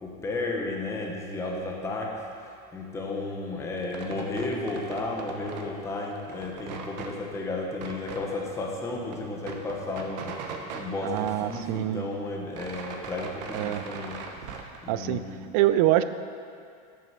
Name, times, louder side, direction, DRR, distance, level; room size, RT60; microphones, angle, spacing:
voice 1, 0.0-2.2 2.7-10.4 10.7-14.2 14.5-15.4, left 2 dB, 15° left, -1 dB, 0.9 m, -33 dB
sound 1, 3.8-5.7 6.0-7.1 7.7-8.2 8.7-8.8 9.0-10.9 11.2-12.1 12.3-14.8, right 5 dB, 85° right, 1.0 m, -40 dB
voice 2, 11.0-12.0 13.5-13.9 14.9-15.2 15.5-16.0, right 14 dB, 60° right, 12 dB, 0.4 m, -24 dB
7.4 x 6.0 x 5.9 m, 2.3 s
supercardioid pair, 155°, 21 cm